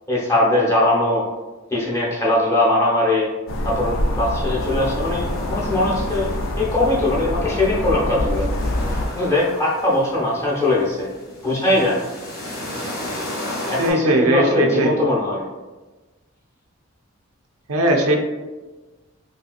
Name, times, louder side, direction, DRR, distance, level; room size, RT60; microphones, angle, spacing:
voice 1, 0.1-1.3 1.7-3.3 3.6-8.5 9.1-11.1 11.4-12.1 13.7-15.4, left 1 dB, 15° left, -5 dB, 0.7 m, -20 dB
sound 1, 3.5-9.1, left 1 dB, 65° left, 0.4 m, -25 dB
sound 2, 4.6-13.9, left 1 dB, 90° left, 1.4 m, -35 dB
voice 2, 13.8-14.9 17.7-18.2, right 1 dB, 85° right, 3 dB, 0.5 m, -18 dB
3.2 x 2.7 x 2.4 m, 1.2 s
head